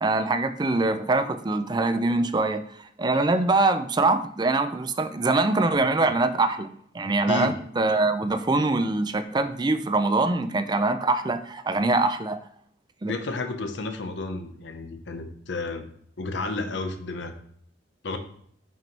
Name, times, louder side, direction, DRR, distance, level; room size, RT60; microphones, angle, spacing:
voice 1, 0.0-6.7 6.9-12.4 13.0-13.1, right 2 dB, 25° right, 10 dB, 0.4 m, -23 dB
voice 2, 7.3-7.6 13.0-15.9 16.2-17.3 18.0-18.2, left 3 dB, 70° left, 7 dB, 0.8 m, -31 dB
6.0 x 3.0 x 5.3 m, 0.64 s
head